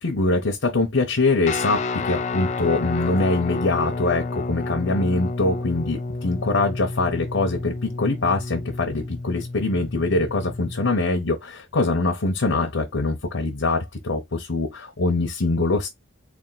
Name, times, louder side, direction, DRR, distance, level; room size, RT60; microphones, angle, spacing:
voice 1, 0.0-15.9, left 3 dB, 85° left, 0.8 m, -23 dB
Guitar, 1.5-10.8, left 3 dB, 40° left, 0.4 m, -30 dB
3.5 x 2.4 x 4.0 m
head